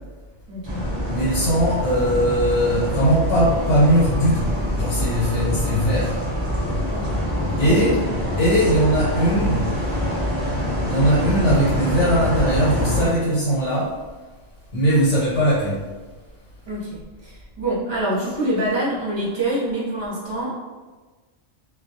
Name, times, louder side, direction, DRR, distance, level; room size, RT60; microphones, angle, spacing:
voice 1, 0.5-0.9 5.2-5.5 6.9-7.1 7.6-8.0 16.7-20.6, right 1 dB, 30° right, -7 dB, 0.5 m, -26 dB
sound 1, 0.6-13.1, equal, 5° left, 0.7 m, -25 dB
voice 2, 1.1-6.2 7.6-8.0 8.4-9.7 10.9-13.9 14.7-15.8, equal, 80° left, -8 dB, 1.0 m, -20 dB
2.2 x 2.1 x 2.7 m, 1.3 s
omnidirectional pair, 1.2 m